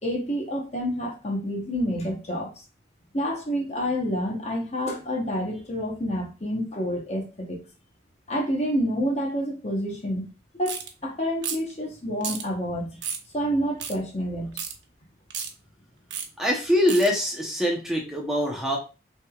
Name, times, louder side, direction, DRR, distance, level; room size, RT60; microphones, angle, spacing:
voice 1, 0.0-2.5 3.1-7.6 8.3-10.3 10.6-13.0 13.3-14.6, equal, 35° left, 1.0 m, -28 dB
sound 1, 10.7-10.9 11.4-11.7 12.2-12.4 13.0-13.3 13.8-13.9 14.6-14.7 15.3-15.5 16.1-16.3 16.9-17.1, right 7 dB, 75° right, 0.8 m, -32 dB
voice 2, 16.4-18.8, equal, 5° right, 0.8 m, -23 dB
6.0 x 3.4 x 2.4 m
head